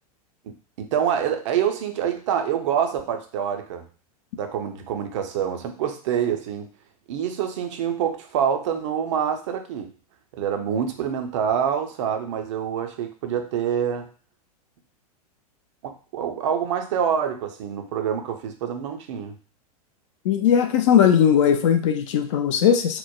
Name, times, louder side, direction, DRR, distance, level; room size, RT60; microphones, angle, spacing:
voice 1, 0.8-3.8 4.4-6.7 7.1-9.9 10.4-14.1 15.8-19.3, right 8 dB, 50° right, 5 dB, 0.4 m, -26 dB
voice 2, 20.2-23.0, left 8 dB, 50° left, 7 dB, 0.4 m, -18 dB
2.9 x 2.0 x 2.2 m, 0.39 s
figure-of-eight pair, 90°, 20 cm